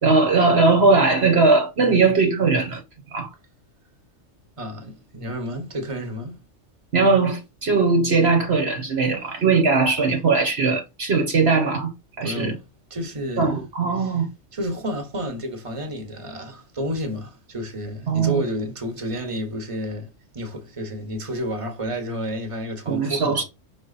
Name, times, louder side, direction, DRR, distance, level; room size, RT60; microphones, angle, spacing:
voice 1, 0.0-2.8 3.1-3.3 6.9-11.9 12.2-12.5 13.4-14.3 18.1-18.4 22.9-23.4, right 4 dB, 55° right, 1.5 m, -19 dB
voice 2, 4.6-6.4 12.2-12.6 12.9-13.5 14.0-14.2 14.5-23.4, equal, 25° right, 1.4 m, -30 dB
5.8 x 4.4 x 4.1 m
omnidirectional pair, 1.3 m